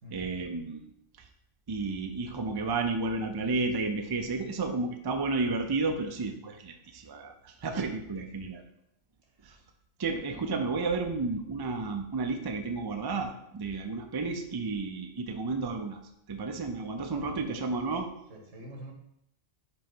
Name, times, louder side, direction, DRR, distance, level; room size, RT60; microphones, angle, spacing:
voice 1, 0.1-0.9 1.7-8.6 9.4-9.6 10.0-16.0 16.3-18.1, right 3 dB, 30° right, 5 dB, 0.5 m, -32 dB
voice 2, 17.1-17.6 18.3-18.9, right 1 dB, 90° right, -1 dB, 2.1 m, -45 dB
5.4 x 4.4 x 5.5 m, 0.77 s
omnidirectional pair, 1.2 m